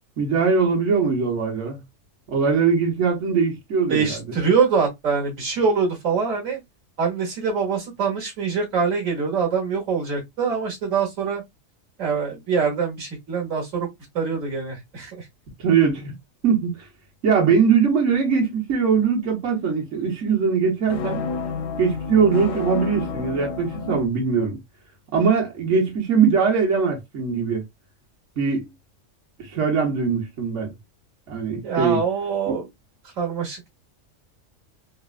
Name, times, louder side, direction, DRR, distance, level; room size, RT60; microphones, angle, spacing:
voice 1, 0.2-1.8 2.3-4.2 15.6-16.1 16.4-16.8 17.2-21.2 21.8-24.6 25.1-27.6 28.4-28.7 29.4-30.7 31.3-32.0 32.5-32.6, right 6 dB, 70° right, 1.3 m, -21 dB
voice 2, 3.9-6.6 7.0-11.4 12.0-13.9 14.1-15.2 31.6-32.7 33.2-33.7, right 5 dB, 90° right, 1.5 m, -24 dB
sound 1, 20.9-24.1, left 5 dB, 85° left, 1.0 m, -30 dB
3.7 x 2.1 x 2.3 m
omnidirectional pair, 1.3 m